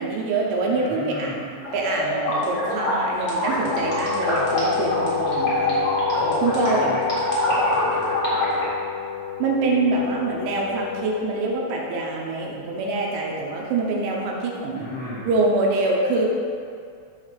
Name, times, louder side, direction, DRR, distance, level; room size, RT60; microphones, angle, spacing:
voice 1, 0.0-5.8 6.4-6.9 9.4-14.9 15.3-16.3, right 3 dB, 75° right, -2 dB, 3.0 m, -25 dB
voice 2, 0.7-1.3 6.1-7.1 7.4-8.6 14.7-15.3, left 1 dB, 65° left, -8 dB, 3.5 m, -31 dB
sound 1, 1.6-8.6, left 1 dB, 40° left, 2.3 m, -25 dB
Wind instrument woodwind instrument, 3.6-11.2, left 9 dB, 85° left, 1.7 m, -30 dB
12.5 x 4.2 x 5.7 m, 2.3 s
omnidirectional pair, 5.5 m